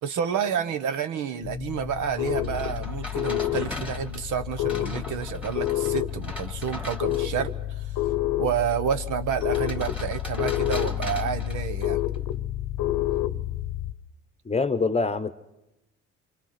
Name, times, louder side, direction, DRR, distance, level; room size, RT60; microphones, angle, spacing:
voice 1, 0.0-7.9 8.4-12.0, right 8 dB, 80° right, 10 dB, 1.2 m, -29 dB
sound 1, 1.4-13.9, left 13 dB, 85° left, 0.9 m, -29 dB
sound 2, 2.4-7.5 9.4-12.2, left 1 dB, 5° right, 2.4 m, -40 dB
voice 2, 14.4-15.3, left 4 dB, 20° left, 12 dB, 0.9 m, -24 dB
27.5 x 25.0 x 5.9 m, 0.95 s
cardioid pair, 90°, 30 cm